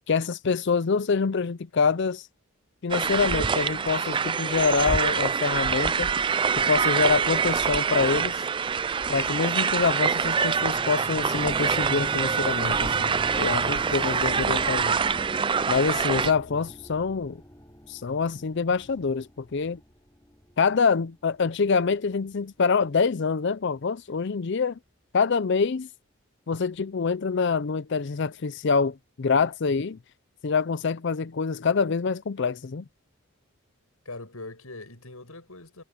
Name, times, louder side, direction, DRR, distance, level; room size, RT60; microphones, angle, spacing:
voice 1, 0.1-2.3 2.8-6.1 6.5-8.4 9.1-15.0 15.7-17.4 17.9-19.8 20.6-24.8 25.1-25.9 26.5-30.0 30.4-32.9, left 5 dB, 50° left, 0.5 m, -25 dB
sound 1, 2.9-16.3, right 6 dB, 20° right, 0.3 m, -25 dB
sound 2, 10.6-20.7 21.3-21.4, equal, 15° left, 4.6 m, -42 dB
voice 2, 34.0-35.8, left 2 dB, 75° left, 6.6 m, -42 dB
head